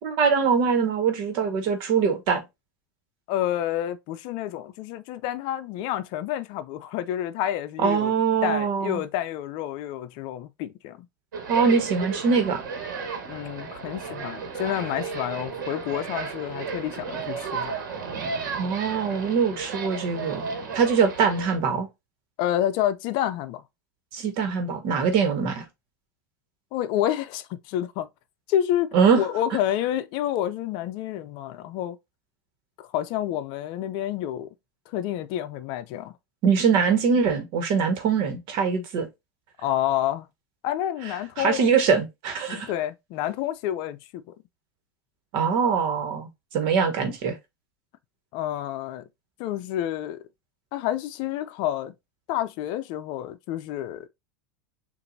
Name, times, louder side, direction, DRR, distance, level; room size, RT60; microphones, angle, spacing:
voice 1, 0.0-2.4 7.8-9.0 11.5-12.6 18.6-20.5 20.7-21.9 24.1-25.6 28.9-29.2 36.4-39.1 41.4-42.7 45.3-47.3, right 6 dB, 55° right, 1.4 m, -23 dB
voice 2, 3.3-8.1 8.4-11.1 13.3-17.7 22.4-23.6 26.7-28.1 28.5-32.0 32.8-34.5 34.9-36.1 39.6-40.3 40.6-41.6 42.5-44.3 48.3-49.0 49.4-50.2 50.7-51.9 52.3-54.1, left 12 dB, 55° left, 0.5 m, -29 dB
sound 1, 11.3-21.6, right 5 dB, 85° right, 1.4 m, -34 dB
6.8 x 2.6 x 2.7 m
hypercardioid pair, 110°, 10 cm